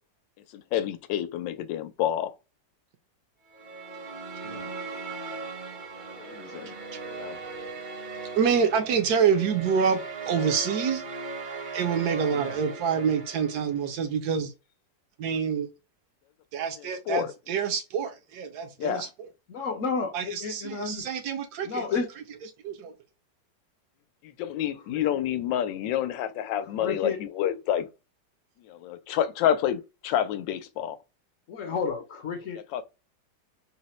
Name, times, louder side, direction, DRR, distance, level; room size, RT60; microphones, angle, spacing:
voice 1, 0.5-2.3 6.2-6.7 7.1-7.4 17.1-17.3 18.8-19.1 24.4-27.9 28.7-31.0 32.7-32.8, left 10 dB, 85° left, 1.3 m, -28 dB
sound 1, 3.5-13.9, right 4 dB, 40° right, 0.7 m, -38 dB
voice 2, 8.3-11.0 11.7-14.5 15.2-15.7 16.5-19.3 20.1-21.9 22.6-22.9, right 6 dB, 70° right, 1.0 m, -27 dB
voice 3, 19.5-21.1 21.6-22.1 24.9-25.0 26.8-27.2 31.5-32.8, left 5 dB, 60° left, 0.8 m, -32 dB
4.0 x 2.1 x 4.1 m
omnidirectional pair, 2.0 m